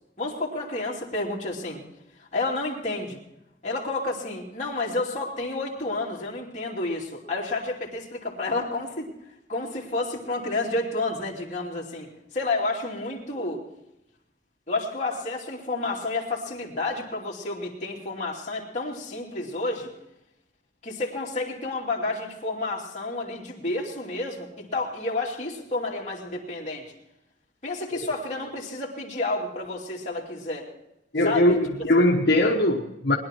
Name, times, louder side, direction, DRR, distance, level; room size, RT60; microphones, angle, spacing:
voice 1, 0.2-1.8 2.2-3.2 3.6-9.1 9.5-12.1 12.3-13.6 14.7-19.9 20.8-26.9 27.6-30.7 31.2-31.6, left 2 dB, 40° left, -3 dB, 2.7 m, -30 dB
voice 2, 31.1-33.1, left 1 dB, 65° left, -1 dB, 1.2 m, -21 dB
20.5 x 11.0 x 4.5 m, 0.89 s
head